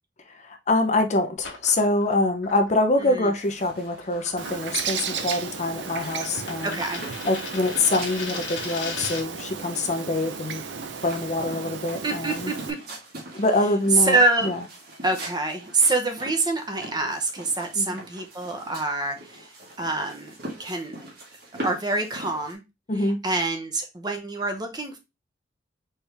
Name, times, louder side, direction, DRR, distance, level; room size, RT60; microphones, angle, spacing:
voice 1, 0.3-6.8 7.2-10.6 11.0-12.5 13.3-14.6 17.8-18.0 22.9-23.2, left 2 dB, 40° left, 6 dB, 0.6 m, -25 dB
sound 1, 1.4-9.4, left 4 dB, 70° left, 1.3 m, -39 dB
voice 2, 3.0-3.3 6.6-7.0 12.0-12.8 14.0-14.6 15.0-19.5 19.8-20.3 20.6-21.0 21.6-22.6 23.0-25.0, right 2 dB, 20° right, 5 dB, 0.8 m, -26 dB
sound 2, 3.4-22.5, right 1 dB, 55° right, 1.7 m, -43 dB
Bird, 4.4-12.7, right 6 dB, 70° right, 0.6 m, -34 dB
4.4 x 3.4 x 3.3 m, 0.24 s
head